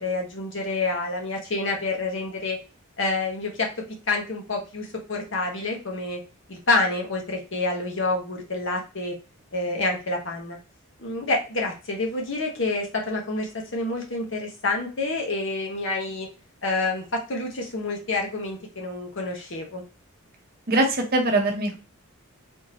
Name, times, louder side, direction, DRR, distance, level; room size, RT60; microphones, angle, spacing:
voice 1, 0.0-2.6 3.0-3.7 4.1-6.2 6.5-9.1 9.5-10.6 11.0-16.3 16.6-19.8, left 2 dB, 60° left, 1 dB, 1.0 m, -28 dB
voice 2, 20.7-21.7, right 2 dB, 45° right, 3 dB, 0.7 m, -22 dB
3.6 x 2.7 x 2.8 m, 0.30 s
head